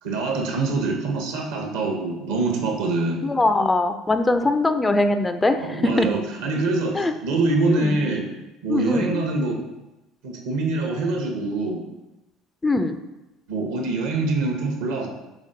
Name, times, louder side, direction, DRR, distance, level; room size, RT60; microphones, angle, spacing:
voice 1, 0.0-3.2 5.6-8.3 8.6-9.6 10.2-11.8 13.5-15.1, right 3 dB, 65° right, 2 dB, 0.7 m, -24 dB
voice 2, 3.2-6.1 6.9-7.1 7.7-8.0 8.7-9.1 12.6-13.0, left 2 dB, 20° left, 9 dB, 0.3 m, -21 dB
5.2 x 3.6 x 2.6 m, 1.0 s
figure-of-eight pair, 60°, 0 cm